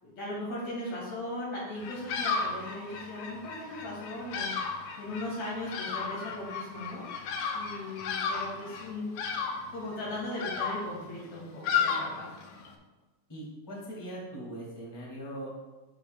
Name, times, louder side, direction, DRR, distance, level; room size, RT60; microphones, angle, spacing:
voice 1, 0.0-9.1 9.7-12.3, left 1 dB, 55° left, -5 dB, 2.7 m, -38 dB
Bird vocalization bird call bird song, 1.8-12.7, left 5 dB, 70° left, 1.9 m, -34 dB
voice 2, 13.3-15.6, right 1 dB, 10° left, -6 dB, 2.3 m, -41 dB
14.0 x 6.3 x 2.3 m, 1.2 s
omnidirectional pair, 4.2 m